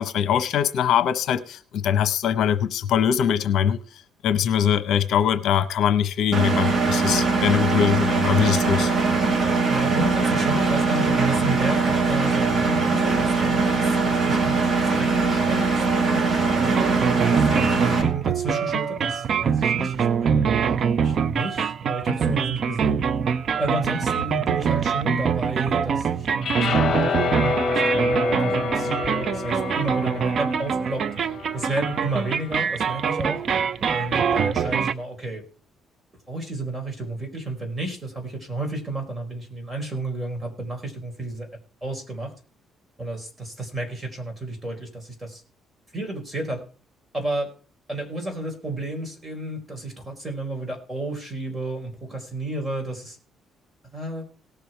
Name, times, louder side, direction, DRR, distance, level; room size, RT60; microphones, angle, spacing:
voice 1, 0.0-3.8 4.2-8.9, left 9 dB, 70° left, 0.9 m, -22 dB
Engine, 6.3-18.0, right 4 dB, 35° right, 2.5 m, -21 dB
voice 2, 9.7-14.6 14.8-16.4 17.0-23.0 23.6-31.1 31.5-33.4 33.9-35.4 36.3-41.5 41.8-42.3 43.0-45.4 45.9-46.6 47.1-47.5 47.9-53.2 53.9-54.2, right 2 dB, 15° right, 4.5 m, -31 dB
sound 1, 16.6-34.9, right 7 dB, 50° right, 0.6 m, -24 dB
sound 2, 26.4-32.7, left 4 dB, 40° left, 1.9 m, -27 dB
18.0 x 7.0 x 4.5 m
cardioid pair, 120°, 0 cm